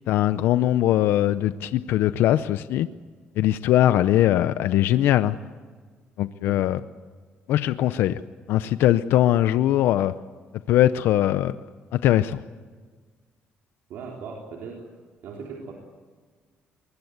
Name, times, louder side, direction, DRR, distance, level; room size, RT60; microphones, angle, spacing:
voice 1, 0.1-2.9 3.4-5.4 6.2-6.8 7.5-8.2 8.5-10.1 10.7-11.6 11.9-12.4, left 12 dB, 85° left, 13 dB, 0.6 m, -21 dB
voice 2, 13.9-14.9 15.2-15.7, right 5 dB, 80° right, 0 dB, 3.7 m, -38 dB
23.5 x 21.0 x 8.0 m, 1.5 s
cardioid pair, 130°, 4 cm